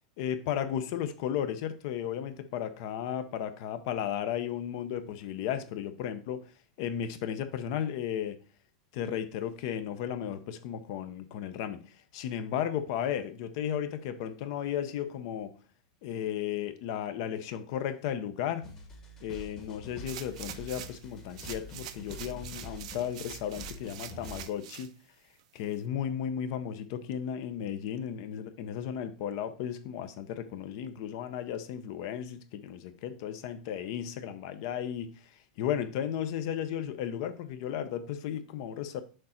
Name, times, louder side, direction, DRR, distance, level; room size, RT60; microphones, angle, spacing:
voice 1, 0.2-6.5 6.8-8.4 8.9-15.6 16.0-18.7 19.2-24.9 25.5-35.2 35.6-39.0, left 9 dB, 45° left, 0.7 m, -34 dB
sound 1, 18.6-24.5, left 1 dB, 15° left, 1.2 m, -46 dB
sound 2, 20.1-21.0 21.3-24.9 25.4-25.5, right 11 dB, 60° right, 0.5 m, -44 dB
6.6 x 3.8 x 4.2 m
supercardioid pair, 165°, 4 cm